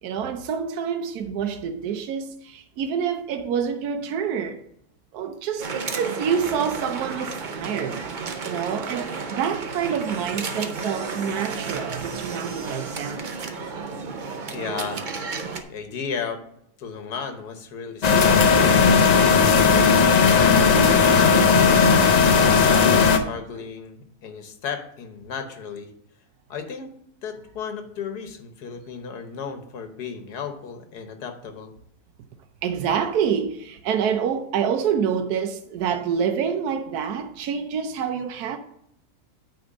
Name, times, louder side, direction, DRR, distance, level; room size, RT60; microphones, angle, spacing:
voice 1, 0.0-4.6 5.1-8.1 8.4-13.3 32.6-38.6, right 7 dB, 80° right, 1.2 m, -27 dB
sound 1, 5.6-15.6, right 4 dB, 45° right, 0.6 m, -32 dB
voice 2, 14.5-15.0 15.7-16.4 16.8-18.6 19.4-21.4 22.3-25.9 26.5-26.9 27.2-31.7, left 6 dB, 85° left, 1.6 m, -34 dB
sound 2, 18.0-23.2, left 5 dB, 55° left, 0.4 m, -16 dB
9.2 x 3.4 x 6.4 m
omnidirectional pair, 1.7 m